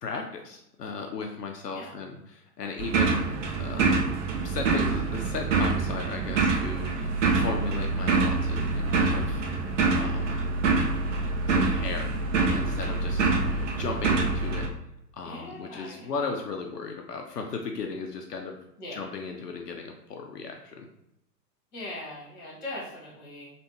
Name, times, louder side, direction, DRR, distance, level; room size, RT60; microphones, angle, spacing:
voice 1, 0.0-3.3 3.6-4.1 4.4-9.4 9.9-10.4 11.5-12.2 12.5-14.7 15.1-18.6 18.9-20.9, left 4 dB, 75° left, 3 dB, 0.5 m, -36 dB
sound 1, 2.8-14.7, right 3 dB, 50° right, 0.5 m, -26 dB
voice 2, 15.2-16.1 18.8-19.1 21.7-23.5, left 1 dB, 20° left, -5 dB, 1.4 m, -40 dB
3.3 x 2.4 x 3.0 m, 0.82 s
figure-of-eight pair, 110°, 48 cm